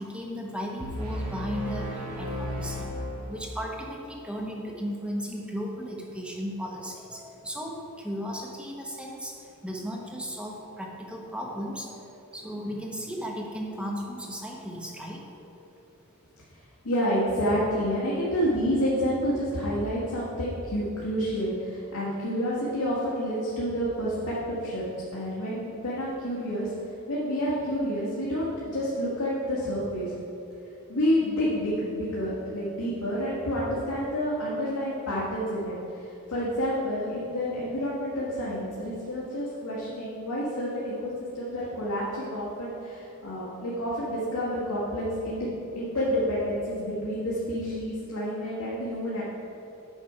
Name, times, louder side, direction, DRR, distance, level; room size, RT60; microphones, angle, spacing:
voice 1, 0.0-2.9 3.3-15.5, equal, 5° right, -1 dB, 1.0 m, -36 dB
sound 1, 0.8-3.7, equal, 90° right, 1.5 m, -34 dB
voice 2, 16.8-26.7 27.1-30.1 30.9-45.5 45.8-49.2, equal, 90° left, -8 dB, 1.8 m, -29 dB
9.0 x 5.9 x 5.0 m, 2.9 s
head